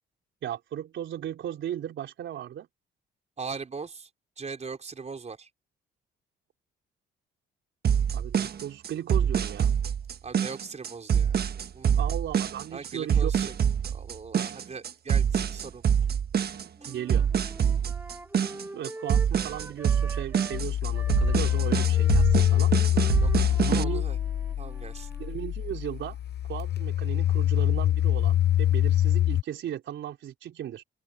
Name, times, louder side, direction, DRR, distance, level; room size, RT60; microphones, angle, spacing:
voice 1, 0.4-2.7 8.1-9.7 11.9-13.3 16.9-17.3 18.7-22.7 23.6-24.0 25.2-26.2 26.5-30.8, right 11 dB, 70° right, 4.0 m, -36 dB
voice 2, 3.4-4.1 4.4-5.5 10.2-11.4 11.7-12.0 12.7-13.5 13.8-15.8 16.8-16.9 23.2-24.2 24.6-25.1, right 5 dB, 35° right, 4.6 m, -40 dB
sound 1, 7.8-23.8, right 8 dB, 55° right, 1.4 m, -25 dB
sound 2, 16.8-20.6 20.9-25.3, right 1 dB, 10° right, 6.0 m, -45 dB
sound 3, 20.5-29.4, left 12 dB, 55° left, 0.9 m, -25 dB
open air
cardioid pair, 90°, 20 cm